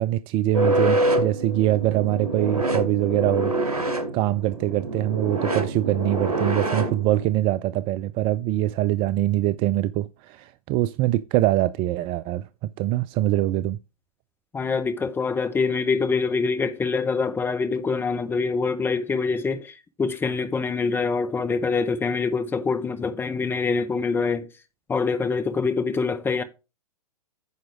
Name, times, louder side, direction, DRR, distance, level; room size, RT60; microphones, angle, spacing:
voice 1, 0.0-12.5 12.8-13.8, right 15 dB, 25° right, 0.5 m, -24 dB
sound 1, 0.5-7.2, right 1 dB, 80° right, 2.3 m, -26 dB
voice 2, 14.5-24.5 24.9-26.4, left 4 dB, 10° left, 1.1 m, -25 dB
9.5 x 6.1 x 3.5 m
figure-of-eight pair, 110°, 19 cm